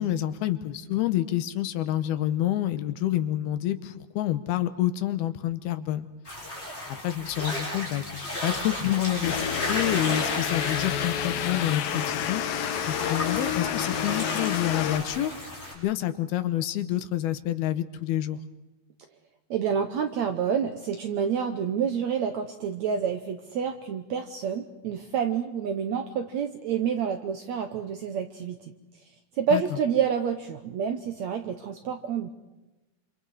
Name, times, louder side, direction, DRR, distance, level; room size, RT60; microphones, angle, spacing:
voice 1, 0.0-6.1 7.0-9.4 9.7-12.4 12.9-15.3 15.8-18.4 29.5-29.6, left 13 dB, 85° left, 11 dB, 3.0 m, -28 dB
sound 1, 6.2-15.7, left 1 dB, 15° left, 7.6 m, -34 dB
sound 2, 9.2-15.0, left 9 dB, 70° left, 2.7 m, -29 dB
voice 2, 19.5-28.6 29.4-32.3, right 7 dB, 70° right, 7 dB, 1.7 m, -28 dB
27.5 x 27.0 x 4.9 m, 1.0 s
omnidirectional pair, 4.4 m